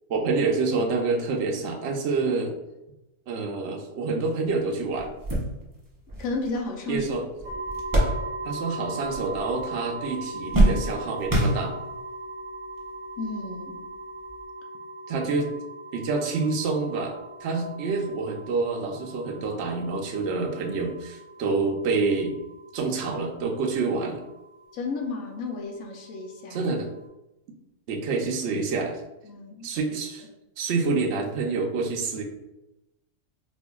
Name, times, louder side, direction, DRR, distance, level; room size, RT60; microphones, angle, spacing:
voice 1, 0.1-2.5 3.3-5.1 6.9-7.2 8.4-11.7 15.1-15.5 15.9-17.1 17.4-22.4 22.7-24.2 26.5-26.9 27.9-29.0 29.6-30.3 30.6-32.2, right 4 dB, 65° right, 0 dB, 0.8 m, -27 dB
sound 1, 4.5-4.6 5.0-8.7 9.0-9.7 10.0-12.1 12.8-12.9 14.2-14.4, right 1 dB, 25° right, 0.4 m, -26 dB
voice 2, 6.2-7.1 13.2-13.8 24.7-26.7 29.2-29.7, left 3 dB, 90° left, 1 dB, 1.0 m, -32 dB
sound 2, 7.4-27.1, right 2 dB, 85° right, 1.2 m, -40 dB
4.3 x 2.5 x 2.2 m, 0.94 s
omnidirectional pair, 1.4 m